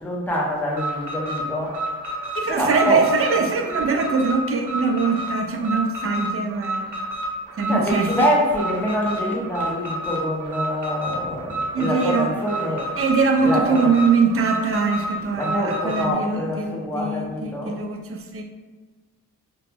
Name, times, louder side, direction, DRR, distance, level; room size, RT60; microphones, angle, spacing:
voice 1, 0.0-3.0 7.5-13.0 13.4-13.9 15.2-17.8, equal, 5° left, -4 dB, 0.7 m, -26 dB
Alarm, 0.7-16.1, right 1 dB, 65° right, 0.8 m, -30 dB
voice 2, 2.4-6.9 7.6-8.3 11.7-12.3 13.0-18.4, right 4 dB, 45° right, 3 dB, 0.5 m, -22 dB
2.9 x 2.0 x 3.4 m, 1.3 s
wide cardioid pair, 85°, 33 cm